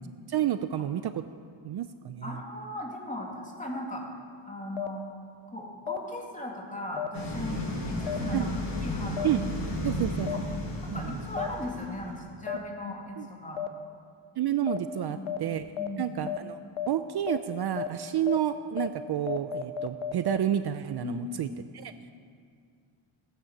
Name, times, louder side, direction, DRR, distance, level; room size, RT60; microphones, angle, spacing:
voice 1, 0.3-1.2 1.6-2.4 8.3-8.5 9.2-9.5 9.8-10.3 10.9-11.2 13.2-13.3 14.4-15.7 16.0-16.6 16.9-21.9, right 11 dB, 50° right, 11 dB, 0.6 m, -30 dB
voice 2, 2.2-4.0 4.5-5.0 5.5-9.3 9.8-9.9 10.3-10.4 10.8-13.6 15.1-15.4 15.8-16.2 21.0-21.3, left 1 dB, 15° left, -1 dB, 2.7 m, -38 dB
sound 1, 4.8-4.9 5.9-6.0 7.0-7.1 8.1-8.2 9.2-9.3 10.3-10.4 11.4-11.5 12.5-12.6 13.6-13.7 14.7-14.8 15.3-15.4 15.8-15.9 16.3-16.4 16.8-16.9 17.3-17.4 17.8-17.9 18.3-18.4 18.8-18.9 19.3-20.4, left 11 dB, 85° left, 1.0 m, -32 dB
sound 2, 7.1-12.2, left 1 dB, 70° left, 5.3 m, -33 dB
17.5 x 10.0 x 7.4 m, 2.2 s
cardioid pair, 125°, 49 cm